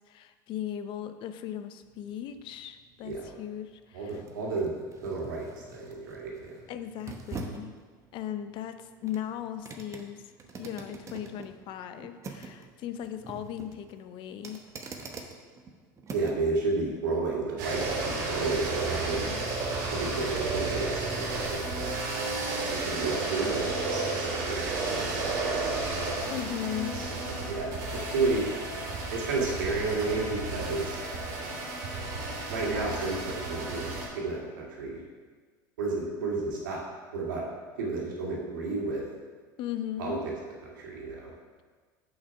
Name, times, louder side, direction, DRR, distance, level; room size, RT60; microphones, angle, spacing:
voice 1, 0.1-4.2 6.7-7.7 8.1-10.3 10.6-14.6 19.2-19.6 26.3-27.0 39.6-40.3, left 10 dB, 55° left, 10 dB, 0.6 m, -37 dB
sound 1, 1.8-16.5 17.0-17.1, right 3 dB, 30° right, 1.0 m, -45 dB
voice 2, 3.9-4.7 5.0-5.5 5.7-6.5 16.1-19.3 19.9-21.9 22.7-25.8 26.9-28.5 29.1-31.0 32.5-35.0 35.8-36.8 37.1-37.4 37.8-39.0 40.0-40.2 40.8-41.3, right 3 dB, 90° right, -3 dB, 2.2 m, -32 dB
sound 2, 17.6-34.1, right 3 dB, 70° right, 2.6 m, -32 dB
6.9 x 5.6 x 5.9 m, 1.5 s
supercardioid pair, 100°, 10 cm